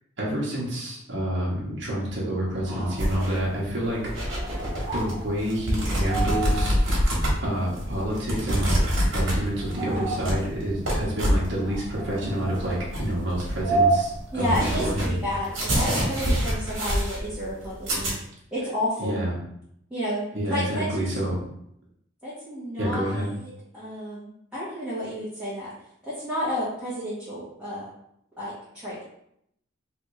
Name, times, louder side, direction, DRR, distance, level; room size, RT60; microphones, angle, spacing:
voice 1, 0.2-4.0 4.9-6.7 7.4-8.7 9.1-15.2 19.0-19.3 20.3-21.4 22.8-23.3, right 1 dB, 65° right, -6 dB, 1.0 m, -28 dB
sound 1, 2.5-15.0, right 3 dB, 30° right, 1.0 m, -33 dB
sound 2, 3.0-18.1, equal, 80° right, 1.3 m, -27 dB
voice 2, 14.3-18.2 18.5-19.2 19.9-20.9 22.2-25.7 26.1-27.9 28.4-29.0, equal, 5° right, -12 dB, 1.0 m, -31 dB
3.3 x 2.5 x 3.1 m, 0.74 s
head